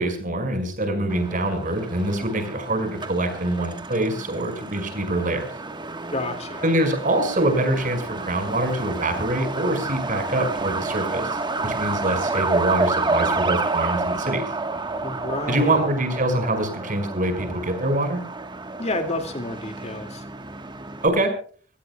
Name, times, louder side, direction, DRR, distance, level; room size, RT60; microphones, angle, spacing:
voice 1, 0.0-5.5 6.6-11.3 11.6-14.4 15.5-18.2 21.0-21.3, right 1 dB, 45° right, 6 dB, 5.2 m, -24 dB
Truck, 1.1-21.1, right 3 dB, 25° right, 1.3 m, -30 dB
voice 2, 6.1-6.7 15.0-15.8 18.8-20.2, left 2 dB, 35° left, 7 dB, 2.2 m, -30 dB
27.5 x 17.0 x 2.3 m, 0.42 s
head